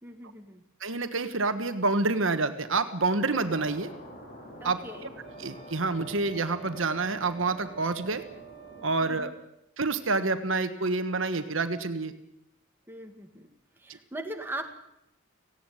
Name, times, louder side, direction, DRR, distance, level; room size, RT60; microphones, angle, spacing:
voice 1, 0.0-0.6 4.6-5.1 9.0-9.3 12.9-13.5 13.8-14.6, right 1 dB, 10° right, 3 dB, 1.9 m, -40 dB
voice 2, 0.8-3.9 4.6-4.8 5.4-8.2 8.8-9.3 9.8-12.1, right 3 dB, 70° right, 9 dB, 1.4 m, -28 dB
sound 1, 3.1-8.9, equal, 40° left, 5.4 m, -47 dB
Wind instrument woodwind instrument, 5.2-9.5, right 13 dB, 30° right, 3.5 m, -48 dB
17.5 x 16.5 x 9.2 m, 0.80 s
head